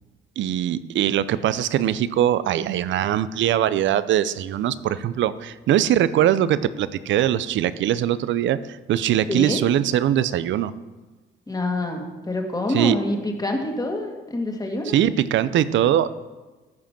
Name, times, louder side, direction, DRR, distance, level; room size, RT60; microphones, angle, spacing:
voice 1, 0.4-10.7 12.7-13.0 14.9-16.1, right 11 dB, 70° right, 16 dB, 0.5 m, -21 dB
voice 2, 9.3-9.6 11.5-14.9, left 1 dB, 20° left, 3 dB, 1.9 m, -26 dB
14.0 x 5.1 x 5.9 m, 1.3 s
cardioid pair, 90°, 20 cm